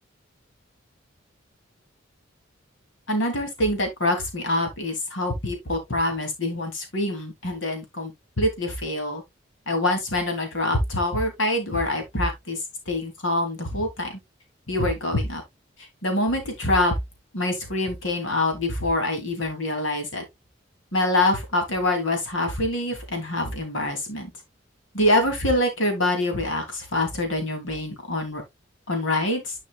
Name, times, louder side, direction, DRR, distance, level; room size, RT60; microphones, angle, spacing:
voice 1, 3.1-8.1 8.4-9.2 9.7-14.2 14.7-15.4 16.0-16.9 17.3-20.2 20.9-24.3 24.9-28.4 28.9-29.5, left 1 dB, 75° left, 2.8 m, -25 dB
10.5 x 5.4 x 2.3 m
head